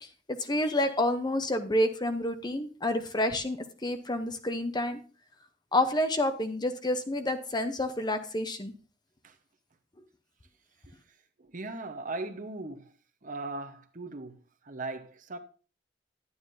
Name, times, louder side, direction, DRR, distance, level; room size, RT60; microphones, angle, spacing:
voice 1, 0.0-5.0 5.7-8.7, left 1 dB, 25° left, 0.7 m, -29 dB
voice 2, 11.4-12.9 13.2-15.4, right 2 dB, 45° right, 1.0 m, -39 dB
11.0 x 9.6 x 2.6 m
head